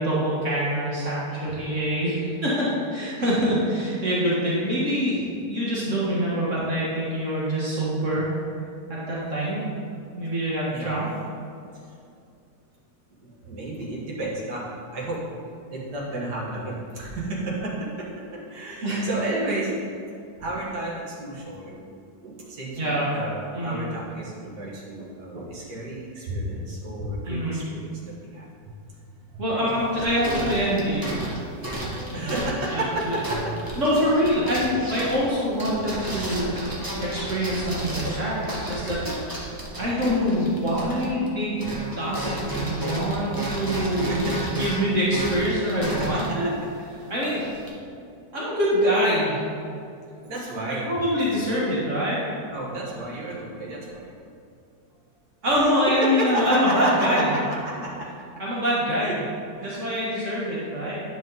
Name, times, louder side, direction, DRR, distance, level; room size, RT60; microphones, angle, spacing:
voice 1, 0.0-8.3 8.9-9.6 10.2-11.1 18.8-19.1 22.8-23.1 23.5-23.8 27.3-27.6 29.4-31.2 32.1-32.4 32.7-32.9 33.8-36.5 37.0-41.7 42.0-44.2 44.5-46.5 47.1-47.4 48.3-49.4 50.7-52.2 55.4-57.3 58.4-59.2 59.6-61.0, equal, 50° right, -7 dB, 1.6 m, -25 dB
voice 2, 13.2-15.2 15.7-19.7 20.4-21.8 22.2-28.0 28.3-28.5 29.3-30.2 32.1-33.4 33.7-33.8 43.8-44.5 46.0-46.4 50.2-50.9 52.5-54.1 55.4-57.4 57.6-58.1 59.0-59.1 59.6-59.9, right 2 dB, 70° right, -5 dB, 2.0 m, -32 dB
sound 1, 29.7-41.3 41.6-47.7, right 1 dB, 15° right, 0.9 m, -32 dB
9.5 x 5.0 x 4.0 m, 2.5 s
omnidirectional pair, 1.8 m